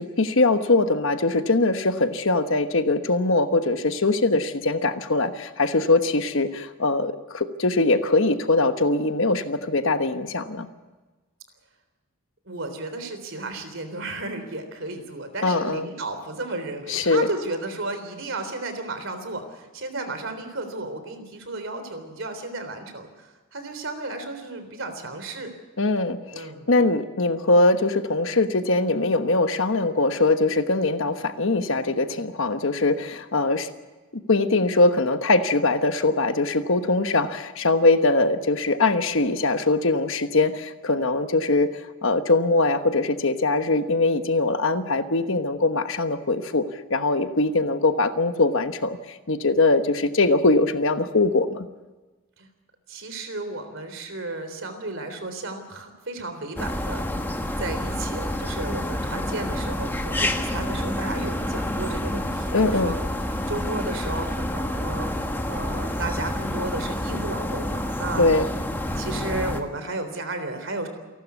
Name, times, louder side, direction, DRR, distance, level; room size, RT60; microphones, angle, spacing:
voice 1, 0.0-10.7 15.4-15.9 16.9-17.3 25.8-33.7 34.3-41.7 42.0-46.6 46.9-51.7 62.5-62.9 68.2-68.5, left 2 dB, 60° left, 9 dB, 1.2 m, -22 dB
voice 2, 12.5-25.5 26.3-26.7 52.4-52.5 52.9-63.0 63.5-68.4 69.0-70.9, right 2 dB, 60° right, 8 dB, 3.6 m, -33 dB
sound 1, 56.6-69.6, left 1 dB, 10° left, 1.4 m, -28 dB
28.5 x 12.5 x 8.3 m, 1.2 s
head